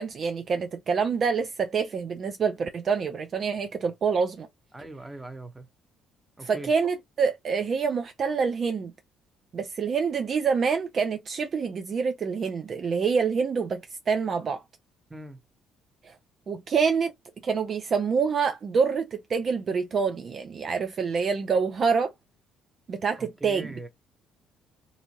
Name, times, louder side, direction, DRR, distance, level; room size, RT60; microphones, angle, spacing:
voice 1, 0.0-4.5 6.4-8.9 9.5-13.8 14.1-14.6 16.0-16.1 16.5-17.1 17.4-22.1 22.9-23.7, right 5 dB, 45° right, 0.4 m, -26 dB
voice 2, 4.7-5.7 6.4-6.7 15.1-15.4 23.2-23.9, right 2 dB, 10° right, 0.9 m, -41 dB
2.7 x 2.6 x 2.6 m
hypercardioid pair, 50°, 0 cm